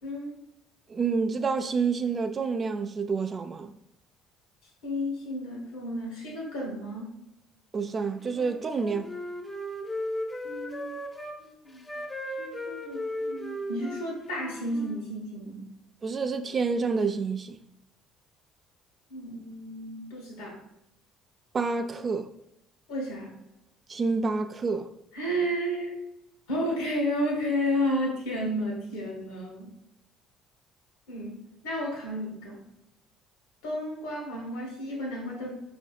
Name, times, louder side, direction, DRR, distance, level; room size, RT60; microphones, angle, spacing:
voice 1, 0.0-0.4 4.8-7.2 10.4-11.0 11.4-11.9 12.4-15.6 19.1-20.6 22.9-23.3 25.1-26.0 26.5-29.7 31.1-32.6 33.6-35.5, equal, 80° left, 1.1 m, -32 dB
voice 2, 0.9-3.7 7.7-9.2 16.0-17.6 21.5-22.3 23.9-24.9, right 4 dB, 40° right, 0.3 m, -28 dB
Wind instrument woodwind instrument, 8.2-11.4 11.9-15.0, left 1 dB, 20° left, 0.5 m, -36 dB
4.7 x 2.6 x 2.2 m
hypercardioid pair, 55°, 0 cm